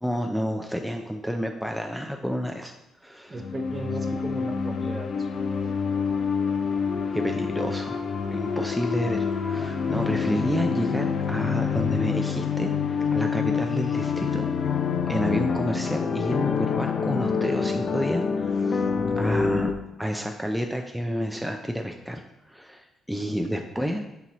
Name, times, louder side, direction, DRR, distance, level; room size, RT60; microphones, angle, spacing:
voice 1, 0.0-2.7 3.0-3.4 7.1-8.0 8.3-14.5 15.1-18.9 19.2-19.7 20.0-22.2 22.5-24.0, equal, ahead, 3 dB, 0.4 m, -30 dB
sound 1, 3.3-19.7, left 6 dB, 55° left, 0.5 m, -27 dB
voice 2, 3.3-5.5 23.3-23.7, right 3 dB, 30° right, 4 dB, 0.8 m, -38 dB
6.9 x 4.5 x 3.0 m, 0.93 s
cardioid pair, 90°, 0 cm